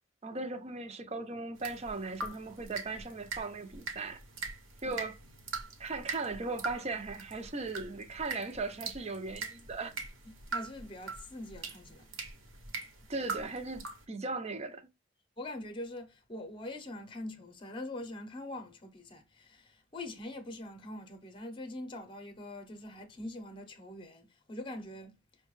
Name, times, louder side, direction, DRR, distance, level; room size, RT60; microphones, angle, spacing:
voice 1, 0.2-4.2 4.8-5.2 5.8-10.0 13.1-14.9, right 3 dB, 30° right, 0.6 m, -38 dB
sound 1, 1.6-14.0, right 4 dB, 80° right, 1.0 m, -42 dB
voice 2, 10.2-12.1 15.4-25.2, left 1 dB, 25° left, 0.7 m, -43 dB
5.5 x 2.2 x 3.1 m
head